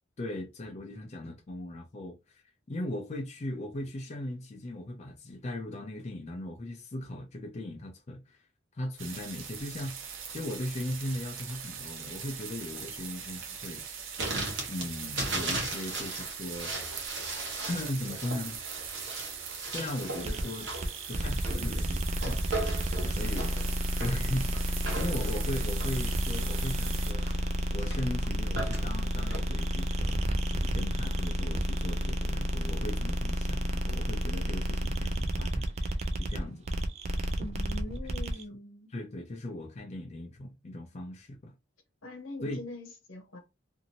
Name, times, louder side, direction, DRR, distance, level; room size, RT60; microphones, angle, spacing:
voice 1, 0.2-2.4 2.7-8.5 8.7-10.0 10.3-13.8 14.7-16.7 17.7-18.6 19.7-20.7 21.1-22.9 23.2-23.5 24.0-27.3 27.7-36.7 38.9-41.5 42.4-42.6, left 1 dB, 35° left, 0.4 m, -38 dB
sound 1, 9.0-27.1, right 7 dB, 75° right, 0.7 m, -41 dB
sound 2, 14.2-29.4, right 2 dB, 60° right, 1.1 m, -38 dB
sound 3, 20.2-38.4, equal, 30° right, 0.3 m, -31 dB
voice 2, 37.4-38.9 42.0-43.4, left 2 dB, 85° left, 1.1 m, -43 dB
2.6 x 2.6 x 2.8 m
head